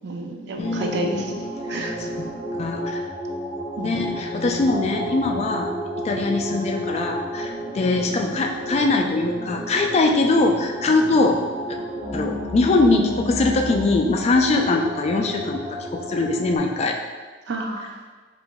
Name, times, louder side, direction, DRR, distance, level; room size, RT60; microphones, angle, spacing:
voice 1, 0.0-1.2 1.7-2.1 3.8-3.9 8.1-8.2 17.5-18.0, right 2 dB, 60° right, 2 dB, 0.4 m, -30 dB
voice 2, 0.6-1.4 1.7-2.3 2.6-3.0 3.8-5.7 6.0-11.4 12.1-17.0, left 3 dB, 35° left, 2 dB, 0.3 m, -22 dB
sound 1, 0.6-16.6, equal, 30° right, 1.3 m, -31 dB
4.6 x 2.5 x 2.2 m, 1.4 s
head